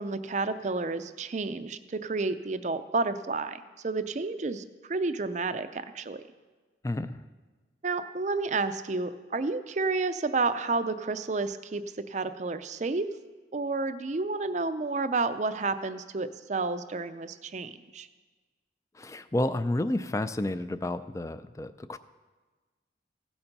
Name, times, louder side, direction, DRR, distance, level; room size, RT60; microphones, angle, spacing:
voice 1, 0.0-6.2 7.8-11.8 12.1-13.1 13.5-18.1, right 3 dB, 40° right, 11 dB, 0.5 m, -30 dB
voice 2, 6.8-7.2 18.9-22.0, left 1 dB, 15° left, 13 dB, 0.4 m, -30 dB
16.0 x 7.1 x 5.3 m, 1.3 s
head